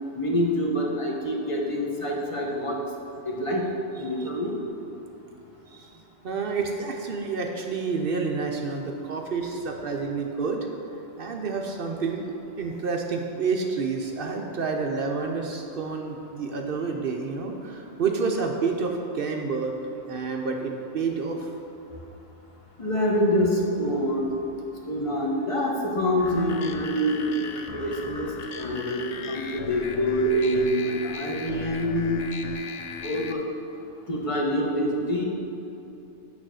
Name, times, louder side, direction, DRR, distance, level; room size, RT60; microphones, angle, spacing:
voice 1, 0.2-2.8 3.2-3.6 4.0-4.5 22.8-24.3 24.8-28.3 28.6-32.2 33.0-33.4 34.1-35.2, equal, 30° left, -1 dB, 0.8 m, -26 dB
voice 2, 6.2-10.7 11.2-12.3 12.6-19.7 20.1-21.5, right 4 dB, 55° right, 2 dB, 0.7 m, -29 dB
sound 1, 26.2-33.3, left 5 dB, 85° left, 0.3 m, -37 dB
8.9 x 3.4 x 6.3 m, 2.9 s
omnidirectional pair, 1.3 m